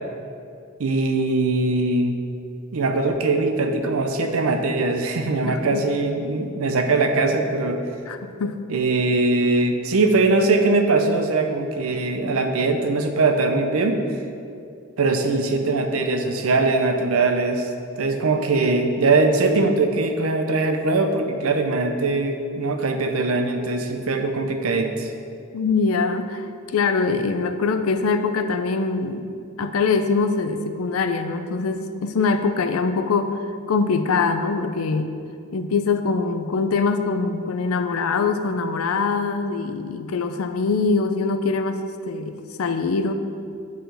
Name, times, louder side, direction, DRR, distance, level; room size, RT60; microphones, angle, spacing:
voice 1, 0.8-2.2 2.7-7.8 8.7-14.0 15.0-17.7 18.0-25.1, right 3 dB, 85° right, 5 dB, 0.6 m, -21 dB
voice 2, 5.4-5.8 8.1-8.6 25.5-26.5 26.7-29.3 29.6-33.4 33.7-35.1 35.5-43.1, left 4 dB, 85° left, 8 dB, 0.5 m, -23 dB
10.0 x 3.9 x 3.4 m, 2.5 s
head